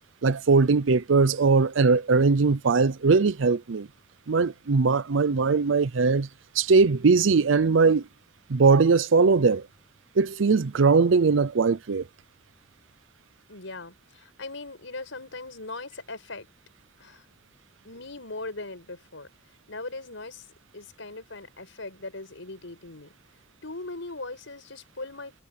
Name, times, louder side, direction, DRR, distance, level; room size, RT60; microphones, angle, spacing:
voice 1, 0.2-3.9 4.3-6.3 6.6-8.0 8.5-9.7 10.2-12.0, right 4 dB, 80° right, 0.6 m, -20 dB
voice 2, 13.5-16.5 17.0-17.2 17.8-19.3 19.7-20.5 20.7-23.1 23.6-25.3, left 2 dB, 85° left, 5.4 m, -39 dB
head